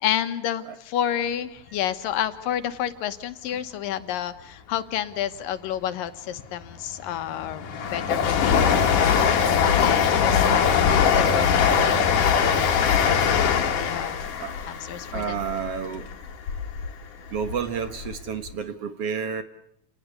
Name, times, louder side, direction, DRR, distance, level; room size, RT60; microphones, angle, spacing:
voice 1, 0.0-8.8 9.3-13.1 13.7-14.1 14.9-15.2, left 10 dB, 85° left, 11 dB, 3.0 m, -30 dB
Train, 6.7-16.9 17.3-18.2 18.5-18.6, left 7 dB, 70° left, 3.4 m, -22 dB
voice 2, 15.1-16.0 17.3-19.4, right 6 dB, 55° right, 10 dB, 2.0 m, -30 dB
29.0 x 19.5 x 8.4 m, 0.74 s
omnidirectional pair, 3.9 m